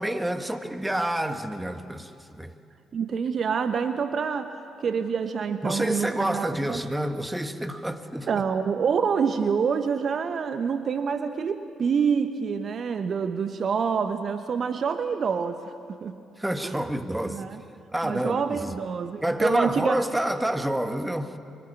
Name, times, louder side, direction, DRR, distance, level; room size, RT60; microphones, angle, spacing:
voice 1, 0.0-2.5 5.6-8.3 16.4-17.4 17.9-18.7 19.2-21.4, right 1 dB, 10° right, 1.9 m, -28 dB
voice 2, 2.9-6.8 8.2-15.7 16.0-16.2 16.6-16.8 17.3-17.6 18.0-20.0, right 6 dB, 50° right, 1.0 m, -27 dB
24.5 x 23.0 x 8.6 m
figure-of-eight pair, 45°, 0 cm